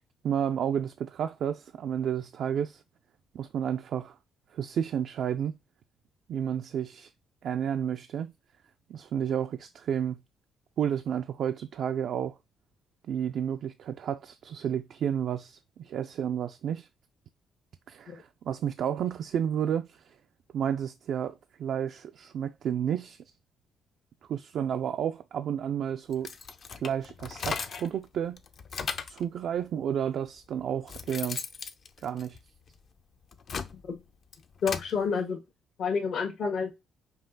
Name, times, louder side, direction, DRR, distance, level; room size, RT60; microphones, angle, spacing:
voice 1, 0.2-2.8 3.3-4.1 4.5-5.5 6.3-7.1 7.4-8.3 8.9-10.2 10.8-12.3 13.1-16.9 17.9-20.0 20.5-23.2 24.3-26.3 26.8-28.4 29.1-31.4 32.0-32.4, right 9 dB, 70° right, 0.4 m, -31 dB
sound 1, 26.1-28.0 28.4-29.2 30.1-30.2 30.6-32.8 33.2-34.9, left 5 dB, 55° left, 0.6 m, -37 dB
voice 2, 34.6-35.4 35.8-36.7, left 5 dB, 70° left, 1.4 m, -29 dB
5.4 x 2.4 x 3.8 m
cardioid pair, 90°, 0 cm